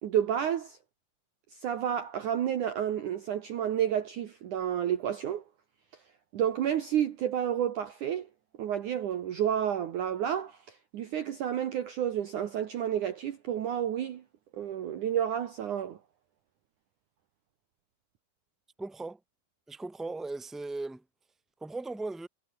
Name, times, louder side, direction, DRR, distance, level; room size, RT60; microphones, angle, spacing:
voice 1, 0.0-0.8 1.6-5.4 6.3-8.3 8.6-14.2 14.5-16.0, right 10 dB, 85° right, 1.7 m, -30 dB
voice 2, 18.8-19.2 19.7-21.0 21.6-22.3, right 3 dB, ahead, 1.8 m, -37 dB
omnidirectional pair, 5.9 m